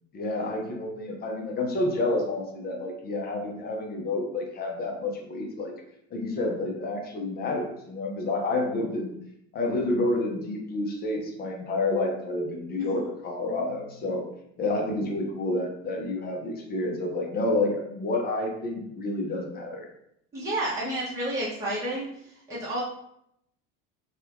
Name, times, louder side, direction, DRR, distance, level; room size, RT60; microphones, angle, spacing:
voice 1, 0.1-5.7 6.1-9.2 9.5-14.2 14.6-19.9, left 2 dB, 30° left, 1 dB, 0.6 m, -29 dB
voice 2, 20.3-22.8, right 1 dB, 10° right, -8 dB, 0.9 m, -31 dB
2.7 x 2.3 x 3.4 m, 0.76 s
supercardioid pair, 125°, 30 cm